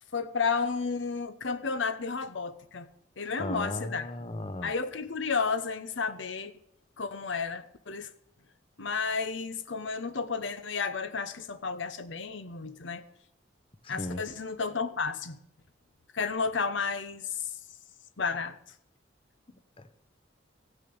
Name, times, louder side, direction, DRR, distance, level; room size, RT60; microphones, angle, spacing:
voice 1, 0.1-2.9 3.2-4.1 4.6-6.5 7.0-8.1 8.8-13.0 13.9-15.4 16.1-17.5 18.2-18.6, left 5 dB, 75° left, 0.9 m, -32 dB
voice 2, 3.4-4.7 13.8-14.2 19.8-20.0, left 1 dB, 30° left, 0.8 m, -36 dB
15.5 x 9.8 x 7.0 m
head